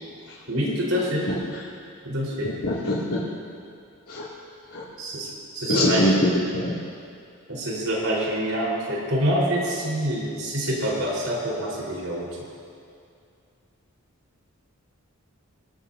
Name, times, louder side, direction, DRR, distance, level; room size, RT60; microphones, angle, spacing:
voice 1, 0.5-1.3 2.0-2.5 5.0-6.1 7.5-12.3, equal, 70° right, -5 dB, 4.4 m, -26 dB
voice 2, 2.6-3.0 4.1-4.2 4.7-4.8 5.7-6.3 6.6-6.7, left 1 dB, 85° left, -9 dB, 2.7 m, -21 dB
26.0 x 13.0 x 2.8 m, 2.4 s
head